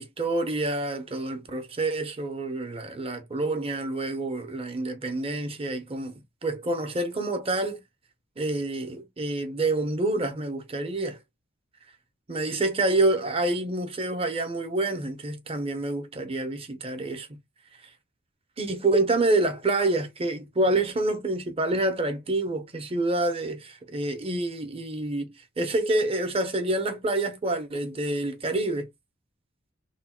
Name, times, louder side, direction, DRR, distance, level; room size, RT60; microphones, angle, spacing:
voice 1, 0.0-7.8 8.4-11.2 12.3-17.3 18.6-28.9, right 2 dB, 30° right, 0.9 m, -27 dB
3.3 x 2.3 x 4.3 m
head